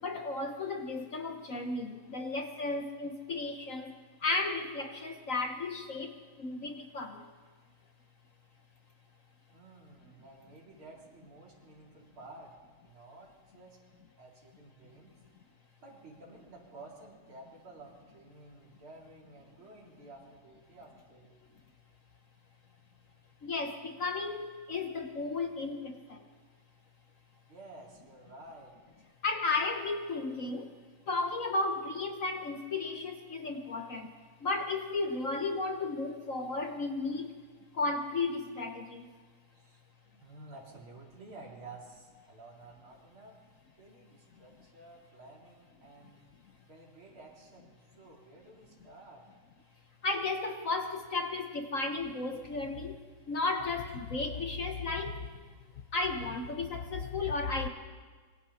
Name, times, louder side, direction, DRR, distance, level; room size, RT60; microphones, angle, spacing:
voice 1, 0.0-3.9 4.2-7.3 23.4-26.2 29.2-30.7 31.1-34.1 34.4-37.4 37.7-39.1 50.0-53.0 53.3-55.2 55.9-57.7, left 3 dB, 50° left, 5 dB, 1.2 m, -34 dB
voice 2, 9.5-12.5 12.8-13.8 14.2-15.2 15.8-21.4 27.5-29.1 39.5-39.8 40.1-43.4 43.8-46.2 46.6-49.2, right 2 dB, 85° right, -3 dB, 4.9 m, -52 dB
26.0 x 23.5 x 4.3 m, 1.5 s
omnidirectional pair, 2.2 m